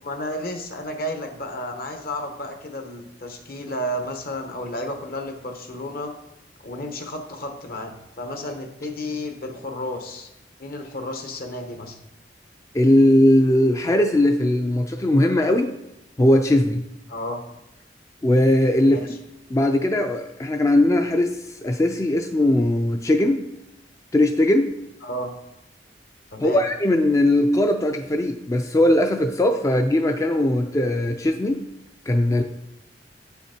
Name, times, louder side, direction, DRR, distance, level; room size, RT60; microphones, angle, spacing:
voice 1, 0.0-6.1 6.6-10.3 10.6-12.0 17.1-17.4 18.8-19.2 25.0-25.3 26.3-26.6, left 1 dB, 55° left, 5 dB, 1.1 m, -32 dB
voice 2, 12.7-15.7 16.2-16.8 18.2-19.0 19.5-23.4 24.1-24.7 26.4-31.6 32.1-32.4, left 1 dB, 20° left, 5 dB, 0.4 m, -19 dB
8.3 x 5.6 x 4.4 m, 0.89 s
head